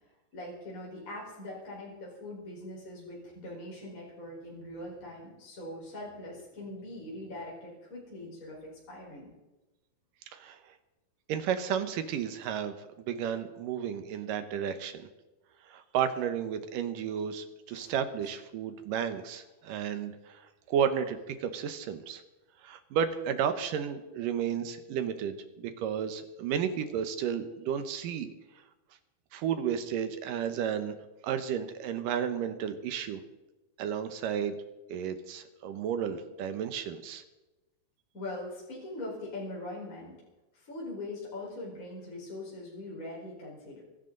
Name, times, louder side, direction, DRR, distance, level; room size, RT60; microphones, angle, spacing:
voice 1, 0.3-9.3 17.7-17.9 18.2-18.3 38.1-40.1 40.5-43.8, left 1 dB, 20° left, -4 dB, 4.7 m, -42 dB
voice 2, 11.3-15.1 15.7-20.4 20.7-22.2 22.6-28.3 29.3-30.9 31.2-33.2 33.8-34.6 34.9-37.2, right 8 dB, 70° right, 9 dB, 2.4 m, -32 dB
24.5 x 12.0 x 3.9 m, 1.1 s
omnidirectional pair, 4.7 m